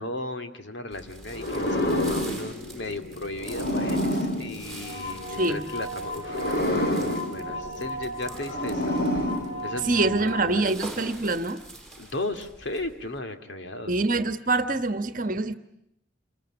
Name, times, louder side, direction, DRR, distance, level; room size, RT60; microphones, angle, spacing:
voice 1, 0.0-9.2 9.6-10.7 12.0-13.9, left 2 dB, 70° left, 2.3 m, -36 dB
sound 1, 0.9-13.2, right 2 dB, ahead, 5.5 m, -45 dB
sound 2, 1.3-5.5 6.2-10.1, left 1 dB, 50° left, 2.5 m, -29 dB
sound 3, 4.8-10.5, equal, 30° left, 4.2 m, -36 dB
voice 2, 9.8-11.6 13.9-15.5, right 2 dB, 45° right, 1.3 m, -25 dB
28.0 x 21.5 x 9.9 m
head